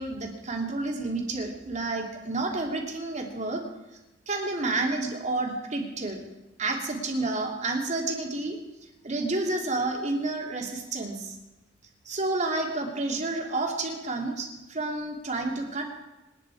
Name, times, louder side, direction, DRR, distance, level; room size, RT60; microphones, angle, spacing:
voice 1, 0.0-3.6 4.3-6.2 6.6-8.6 9.0-11.3 12.0-15.8, right 2 dB, 40° right, 1 dB, 2.7 m, -30 dB
27.0 x 10.0 x 4.8 m, 1.0 s
head